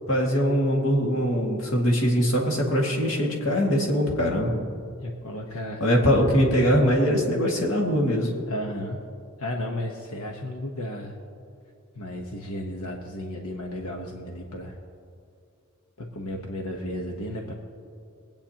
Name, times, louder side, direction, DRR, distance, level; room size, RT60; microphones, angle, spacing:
voice 1, 0.1-4.5 5.8-8.3, equal, 60° left, -2 dB, 2.0 m, -22 dB
voice 2, 5.0-5.9 8.5-9.0 9.4-11.2 11.9-14.8 16.0-17.5, left 1 dB, 90° left, 1 dB, 1.1 m, -34 dB
22.0 x 8.8 x 2.9 m, 2.4 s
head